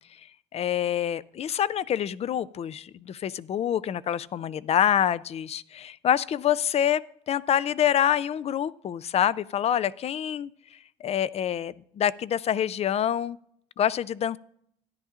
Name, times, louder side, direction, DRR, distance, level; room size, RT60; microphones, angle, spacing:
voice 1, 0.5-7.0 7.3-10.5 11.0-13.4 13.8-14.4, left 10 dB, 40° left, 18 dB, 0.4 m, -26 dB
13.5 x 10.0 x 2.4 m, 0.67 s
cardioid pair, 110°, 17 cm